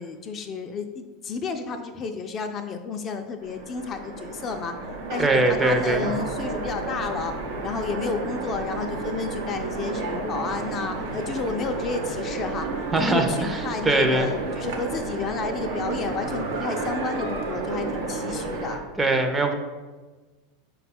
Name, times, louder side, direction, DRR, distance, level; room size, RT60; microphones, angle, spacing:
voice 1, 0.0-4.7 5.1-7.3 7.6-12.7 13.0-18.8, left 5 dB, 35° left, 5 dB, 0.4 m, -31 dB
Train, 3.4-18.8, right 3 dB, 75° right, 0.7 m, -31 dB
voice 2, 5.2-6.2 12.9-14.3 19.0-19.5, right 2 dB, 15° right, 5 dB, 0.5 m, -22 dB
5.2 x 2.2 x 4.2 m, 1.3 s
hypercardioid pair, 95°, 0 cm